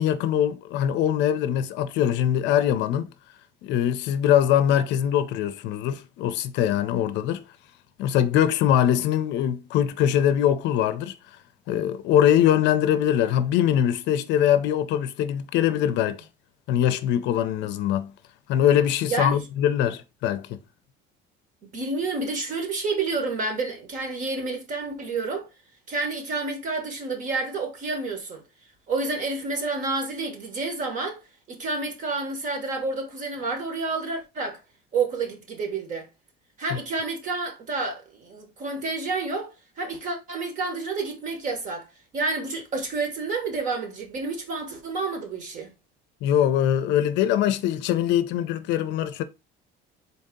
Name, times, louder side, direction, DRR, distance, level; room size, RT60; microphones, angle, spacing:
voice 1, 0.0-3.1 3.6-7.4 8.0-11.1 11.7-16.2 16.7-18.1 18.5-20.6 36.7-36.8 46.2-49.2, left 10 dB, 65° left, 0.5 m, -22 dB
voice 2, 19.0-19.4 21.7-25.5 25.9-28.4 28.9-31.2 31.5-34.6 34.9-36.1 36.6-39.5 39.8-41.9 42.1-45.7, right 3 dB, 40° right, 1.2 m, -29 dB
4.0 x 2.7 x 3.7 m
cardioid pair, 155°, 20 cm